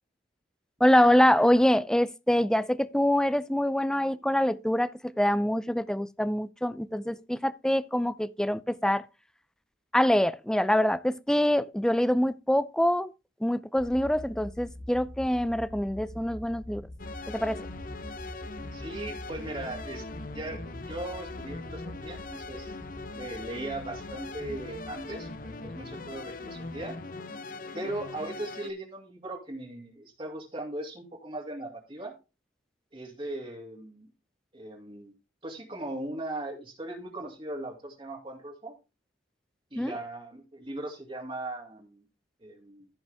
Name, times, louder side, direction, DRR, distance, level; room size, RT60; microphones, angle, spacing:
voice 1, 0.8-9.0 9.9-13.1 13.4-16.9 17.3-17.6 39.8-39.9, left 1 dB, 5° left, 0.4 m, -25 dB
sound 1, 13.8-26.9, left 1 dB, 85° left, 2.4 m, -45 dB
sound 2, 17.0-28.7, left 3 dB, 45° left, 0.8 m, -41 dB
voice 2, 18.7-20.0 20.3-22.7 23.1-27.0 27.7-32.1 32.9-34.1 34.5-35.1 35.4-38.7 39.7-42.0 42.4-42.9, right 1 dB, 30° right, 2.3 m, -38 dB
15.0 x 5.4 x 3.4 m
head